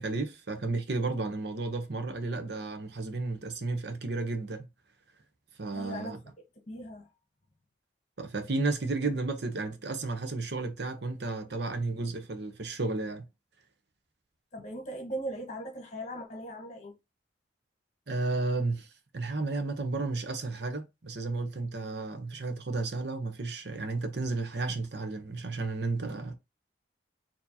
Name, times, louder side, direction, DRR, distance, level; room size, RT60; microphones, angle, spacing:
voice 1, 0.0-4.7 5.6-6.2 8.2-13.3 18.1-18.9 19.1-26.4, right 3 dB, 65° right, 0.7 m, -33 dB
voice 2, 5.7-6.1 6.7-7.1 14.5-16.9, right 1 dB, 40° left, 1.2 m, -39 dB
4.5 x 2.8 x 2.7 m
head